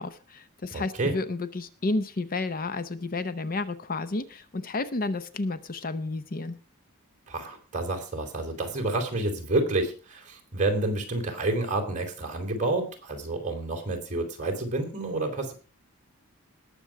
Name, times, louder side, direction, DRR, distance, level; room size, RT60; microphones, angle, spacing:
voice 1, 0.0-6.6, left 3 dB, 40° left, 12 dB, 0.7 m, -31 dB
voice 2, 0.7-1.1 7.3-15.5, right 2 dB, 35° right, 2 dB, 3.7 m, -29 dB
19.5 x 7.0 x 4.7 m, 0.37 s
head